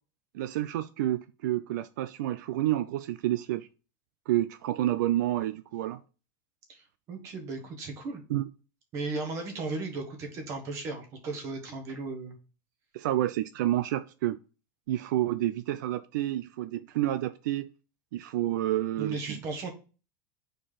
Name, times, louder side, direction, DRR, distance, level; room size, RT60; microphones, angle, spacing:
voice 1, 0.3-3.7 4.3-6.0 8.3-8.5 12.9-14.4 14.9-17.7 18.1-19.4, right 14 dB, 75° right, 0.4 m, -29 dB
voice 2, 6.7-8.2 8.9-12.4 19.0-19.7, right 3 dB, 30° right, 1.4 m, -36 dB
5.0 x 4.4 x 5.7 m
supercardioid pair, 180°, 10 cm